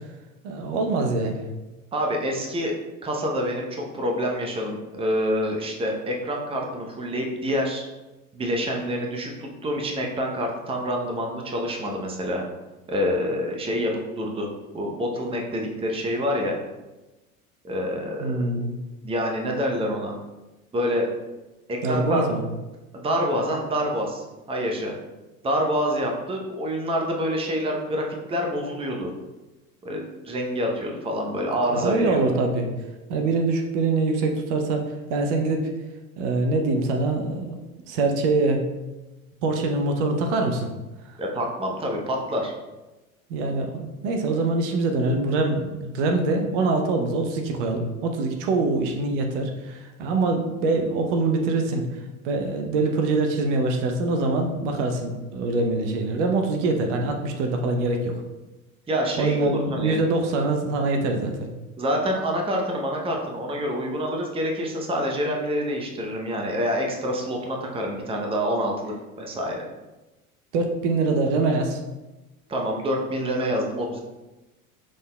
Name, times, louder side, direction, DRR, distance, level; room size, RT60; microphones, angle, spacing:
voice 1, 0.4-1.4 18.2-18.8 21.8-22.4 31.7-32.7 33.1-35.7 36.2-37.6 37.9-38.6 39.4-40.7 41.1-41.2 43.3-58.2 59.2-61.5 70.5-71.8, right 3 dB, 55° right, 4 dB, 0.7 m, -24 dB
voice 2, 1.9-2.7 3.0-7.8 8.3-12.4 12.9-14.5 14.7-16.5 17.6-18.4 19.0-20.1 20.7-21.1 21.7-22.2 22.9-24.9 25.4-29.1 29.8-32.2 41.2-42.5 58.9-60.0 61.8-69.6 72.5-74.0, equal, 15° right, 1 dB, 0.7 m, -27 dB
6.3 x 3.6 x 2.2 m, 1.1 s
figure-of-eight pair, 75°, 42 cm